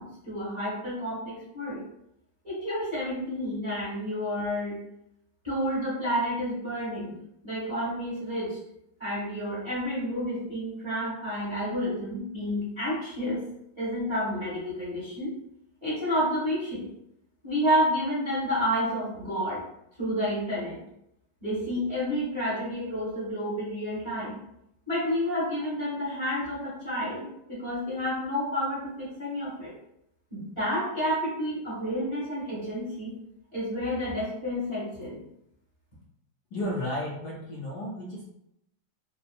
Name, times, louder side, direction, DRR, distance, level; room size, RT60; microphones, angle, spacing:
voice 1, 0.0-1.8 2.4-4.8 5.4-7.1 7.4-8.6 9.0-13.4 13.8-15.3 15.8-16.8 17.4-19.6 20.0-20.8 21.4-24.4 24.9-29.7 30.3-33.1 33.5-35.2, equal, 15° right, -9 dB, 1.1 m, -30 dB
voice 2, 36.5-38.2, left 1 dB, 70° left, -5 dB, 1.0 m, -33 dB
3.4 x 2.2 x 2.4 m, 0.79 s
omnidirectional pair, 2.1 m